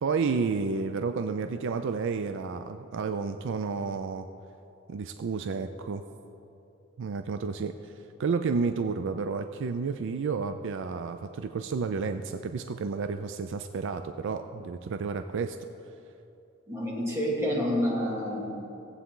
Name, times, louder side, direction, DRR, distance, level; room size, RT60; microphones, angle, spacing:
voice 1, 0.0-4.3 4.9-6.0 7.0-7.9 8.2-15.6, right 5 dB, 65° right, 8 dB, 0.4 m, -31 dB
voice 2, 16.7-18.5, equal, 15° right, -6 dB, 2.5 m, -28 dB
17.0 x 8.2 x 3.8 m, 2.9 s
head